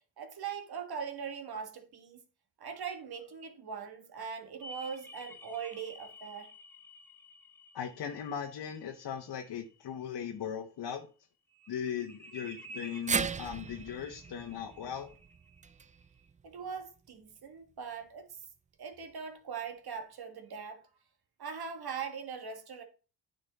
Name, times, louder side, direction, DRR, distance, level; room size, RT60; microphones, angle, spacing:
voice 1, 0.2-2.2 2.6-6.5 16.4-18.3 18.8-20.8 21.4-22.8, right 6 dB, 55° right, 1.8 m, -41 dB
sound 1, 4.6-10.1 11.5-16.2, right 1 dB, 5° left, 1.4 m, -52 dB
voice 2, 7.7-11.1 11.7-15.1, left 8 dB, 60° left, 1.1 m, -38 dB
sound 2, 13.1-17.3 17.7-17.8 18.9-19.0, right 5 dB, 20° right, 0.3 m, -38 dB
9.0 x 5.3 x 4.1 m
cardioid pair, 75°, 44 cm